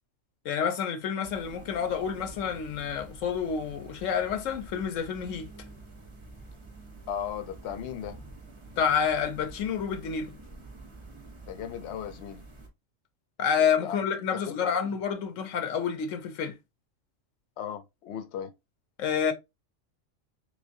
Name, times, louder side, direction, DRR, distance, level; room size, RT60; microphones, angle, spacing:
voice 1, 0.4-5.5 8.8-10.4 13.4-16.6 19.0-19.3, left 7 dB, 85° left, 1.1 m, -28 dB
sound 1, 1.2-12.7, right 3 dB, 30° right, 0.6 m, -48 dB
voice 2, 7.1-8.2 11.5-12.4 13.8-14.0 14.3-14.9 17.6-18.5, left 9 dB, 70° left, 0.8 m, -37 dB
3.3 x 3.2 x 2.6 m
omnidirectional pair, 1.3 m